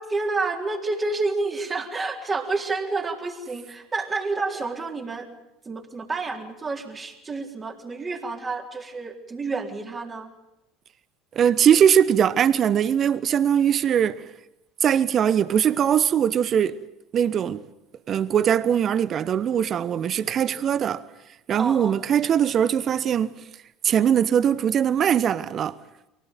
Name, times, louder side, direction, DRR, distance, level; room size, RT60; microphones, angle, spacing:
voice 1, 0.0-5.3 5.7-10.3 21.6-22.0, right 3 dB, 25° right, 3.8 m, -29 dB
voice 2, 11.3-14.2 14.8-16.8 17.1-17.6 18.1-21.0 21.5-23.3 23.8-25.8, right 9 dB, 40° right, 1.1 m, -21 dB
23.5 x 18.0 x 9.3 m
figure-of-eight pair, 70°, 0 cm